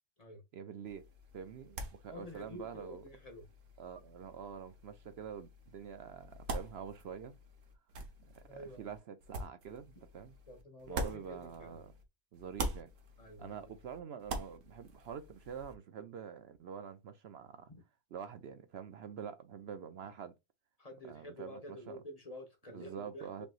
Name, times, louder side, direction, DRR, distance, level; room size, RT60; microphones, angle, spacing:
voice 1, 0.5-1.0 1.3-3.0 3.8-7.3 8.3-10.3 10.9-11.9 12.3-12.9 13.4-17.7 18.1-20.3 21.1-22.0 22.7-23.5, right 7 dB, 65° right, 0.8 m, -46 dB
sound 1, 0.9-12.0 12.3-15.7, right 2 dB, 85° right, 1.4 m, -45 dB
voice 2, 2.1-3.5 8.5-8.9 10.5-11.8 13.2-13.7 17.7-17.8 20.8-23.5, left 1 dB, 30° left, 1.1 m, -49 dB
5.3 x 3.0 x 2.4 m
omnidirectional pair, 1.3 m